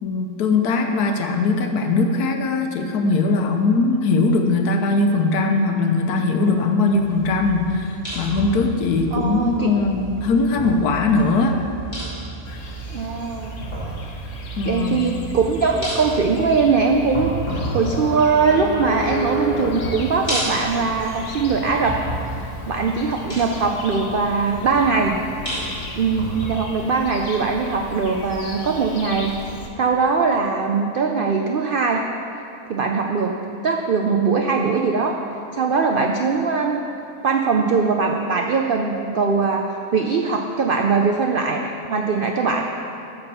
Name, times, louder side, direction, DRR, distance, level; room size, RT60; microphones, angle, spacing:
voice 1, 0.0-11.6 14.6-15.0, left 3 dB, 80° left, 4 dB, 1.3 m, -20 dB
sound 1, 6.9-26.5, right 2 dB, 30° left, 2.8 m, -32 dB
voice 2, 9.1-9.7 12.9-13.7 14.6-22.0 22.7-25.2 25.9-32.0 32.7-33.3 33.6-35.2 35.5-36.8 37.2-41.6 41.9-42.6, right 4 dB, 75° right, 2 dB, 0.4 m, -21 dB
sound 2, 12.4-29.7, left 2 dB, 55° left, 1.2 m, -35 dB
12.5 x 4.3 x 6.8 m, 2.7 s
omnidirectional pair, 1.6 m